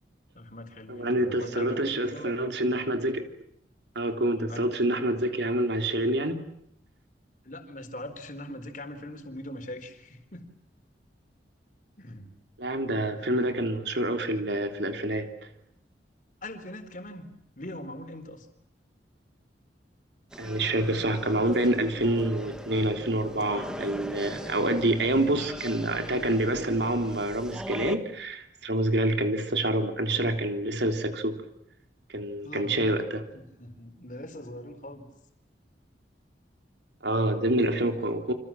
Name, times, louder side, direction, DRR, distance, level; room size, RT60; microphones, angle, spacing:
voice 1, 0.3-2.6 4.5-4.7 7.4-10.5 12.0-12.3 13.1-13.3 16.4-17.3 17.6-18.5 24.9-25.4 32.4-32.9 33.3-35.0 37.6-38.2, left 1 dB, 45° left, 7 dB, 4.2 m, -41 dB
voice 2, 0.9-3.3 3.9-6.4 12.6-15.3 20.4-31.4 32.1-33.2 37.0-38.3, right 1 dB, 75° right, 6 dB, 3.4 m, -27 dB
sound 1, 20.3-28.0, equal, 5° right, 1.8 m, -40 dB
29.0 x 26.5 x 7.6 m, 0.76 s
head